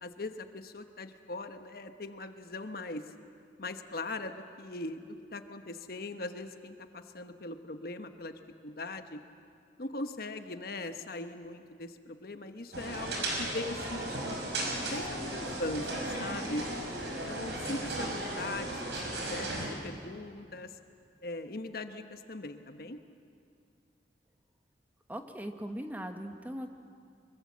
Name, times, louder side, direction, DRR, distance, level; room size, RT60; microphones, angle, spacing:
voice 1, 0.0-3.1 3.6-9.2 9.8-14.4 14.9-16.7 17.1-20.7 21.2-23.0, left 2 dB, 55° left, 8 dB, 1.1 m, -40 dB
sound 1, 12.7-19.7, right 1 dB, 80° right, 5.6 m, -35 dB
voice 2, 25.1-26.7, equal, 10° right, 5 dB, 1.2 m, -39 dB
24.5 x 23.0 x 7.5 m, 2.4 s
head